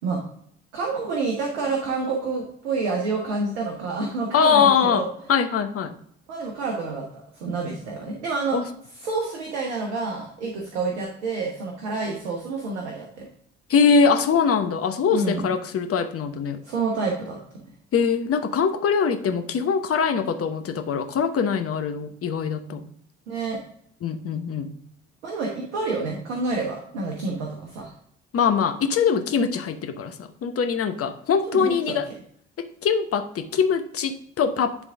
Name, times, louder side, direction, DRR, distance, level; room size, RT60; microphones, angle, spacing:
voice 1, 0.7-5.1 6.3-8.6 9.0-13.3 15.1-15.4 16.6-17.4 23.3-23.6 25.2-27.9 31.5-31.8, right 3 dB, 80° right, 0 dB, 1.1 m, -28 dB
voice 2, 4.3-6.0 8.5-8.7 13.7-16.6 17.9-22.8 24.0-24.7 28.3-32.1 32.6-34.8, left 6 dB, 40° left, 7 dB, 0.9 m, -22 dB
10.0 x 3.5 x 3.5 m, 0.67 s
figure-of-eight pair, 50°, 35 cm